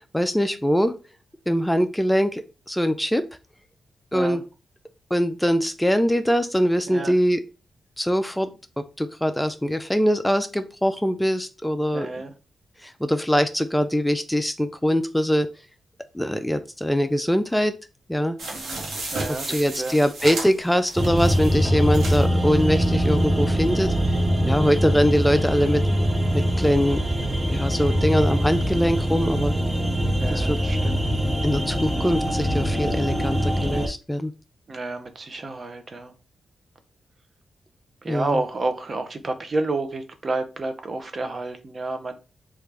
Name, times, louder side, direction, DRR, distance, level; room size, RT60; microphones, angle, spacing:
voice 1, 0.1-1.0 1.5-3.2 4.1-4.4 5.1-7.4 8.0-8.5 8.8-12.1 12.8-15.5 16.1-17.7 18.1-18.4 19.3-23.9 24.5-25.8 26.3-27.0 27.5-29.5 30.3-30.6 31.4-34.3 38.1-38.4, equal, 5° left, 9 dB, 0.3 m, -22 dB
voice 2, 11.9-12.3 18.5-18.8 19.1-20.0 24.6-24.8 30.2-31.0 34.7-36.1 38.0-42.1, right 3 dB, 45° right, 7 dB, 0.6 m, -30 dB
sound 1, 18.4-22.3 22.8-22.9 23.1-23.2, right 2 dB, 75° right, 1.0 m, -33 dB
sound 2, 21.0-33.9, equal, 10° right, 0.7 m, -23 dB
3.2 x 2.4 x 3.3 m, 0.32 s
cardioid pair, 70°, 0 cm